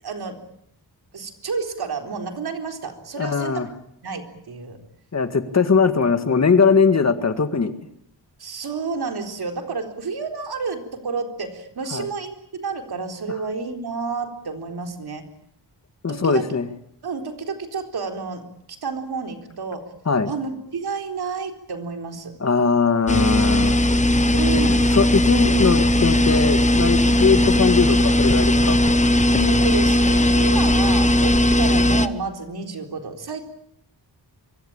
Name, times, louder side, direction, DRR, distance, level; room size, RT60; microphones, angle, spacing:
voice 1, 0.0-0.4 1.1-3.5 4.0-4.8 8.4-15.3 16.1-16.5 17.0-18.5 18.8-19.9 20.3-22.3 24.3-24.9 29.3-33.5, right 4 dB, 65° right, 5 dB, 4.1 m, -30 dB
voice 2, 3.2-3.7 5.1-7.7 11.9-12.0 16.0-16.7 20.1-20.3 22.4-23.8 24.5-28.8, left 5 dB, 40° left, 9 dB, 1.9 m, -20 dB
sound 1, 23.1-32.1, left 1 dB, 15° left, 1.0 m, -18 dB
25.0 x 24.0 x 8.8 m, 0.70 s
wide cardioid pair, 175°, 42 cm